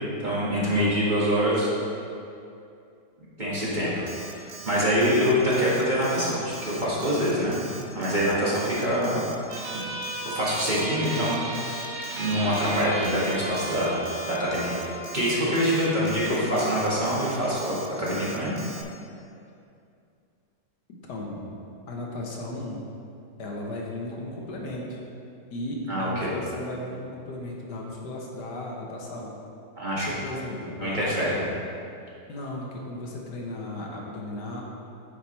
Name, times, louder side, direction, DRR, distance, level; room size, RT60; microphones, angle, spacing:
voice 1, 0.2-1.7 3.4-3.9 4.3-7.6 7.9-9.3 9.7-9.8 10.3-11.8 12.2-14.8 15.1-18.6 25.9-26.3 29.8-30.1 30.8-31.5, equal, 25° right, -8 dB, 1.6 m, -25 dB
Alarm, 4.1-18.8, right 4 dB, 60° right, 0.9 m, -43 dB
sound 1, 9.5-16.5, right 1 dB, 80° right, 1.7 m, -36 dB
voice 2, 20.9-21.6 21.9-22.8 23.4-25.0 25.5-29.3 30.0-31.4 32.3-34.6, left 1 dB, 70° left, -1 dB, 1.6 m, -35 dB
9.4 x 5.1 x 4.3 m, 2.6 s
omnidirectional pair, 1.9 m